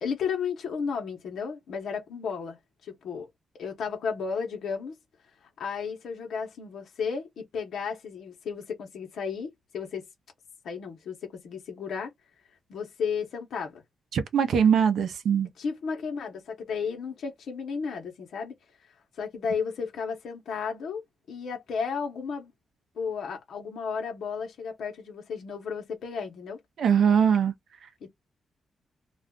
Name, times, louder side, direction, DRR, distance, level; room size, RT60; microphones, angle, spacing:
voice 1, 0.0-2.6 2.8-3.3 3.6-5.0 5.6-10.1 10.6-11.2 11.4-12.1 12.7-13.8 15.6-18.5 19.2-21.0 21.3-22.5 23.0-26.6 28.0-28.1, left 6 dB, 70° left, 0.8 m, -33 dB
voice 2, 14.1-15.5 26.8-27.5, right 7 dB, 65° right, 0.5 m, -22 dB
2.4 x 2.3 x 3.6 m
wide cardioid pair, 180°, 0 cm